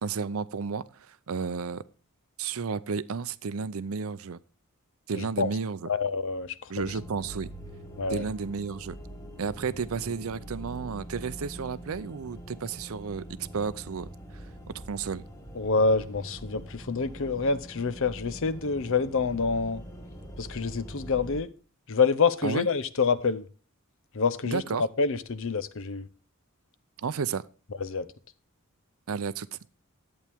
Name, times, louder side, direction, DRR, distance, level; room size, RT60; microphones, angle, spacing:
voice 1, 0.0-1.8 2.4-4.4 5.1-5.9 6.7-7.5 8.1-9.0 9.4-13.3 13.5-14.1 14.3-15.3 22.4-22.7 24.4-24.8 27.0-27.4 29.1-29.6, right 5 dB, 70° right, 0.5 m, -32 dB
voice 2, 5.1-5.5 5.9-6.9 8.0-8.3 15.6-19.8 20.4-21.5 21.9-23.5 24.1-24.6 25.0-26.1 27.8-28.1, left 4 dB, 65° left, 0.7 m, -27 dB
sound 1, 6.8-21.4, right 1 dB, 15° left, 1.6 m, -43 dB
11.0 x 8.7 x 3.5 m
head